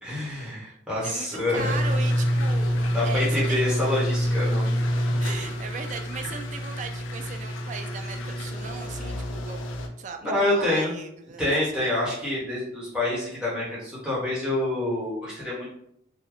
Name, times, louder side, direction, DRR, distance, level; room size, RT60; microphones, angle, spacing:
voice 1, 0.0-1.7 2.8-4.7 10.2-10.9 11.4-15.7, left 1 dB, 5° right, -8 dB, 1.1 m, -27 dB
voice 2, 0.6-3.6 5.2-9.6 10.0-11.9, right 5 dB, 40° right, 5 dB, 0.3 m, -38 dB
sound 1, 1.5-9.9, equal, 85° left, 0.5 m, -27 dB
3.0 x 2.2 x 3.7 m, 0.74 s
head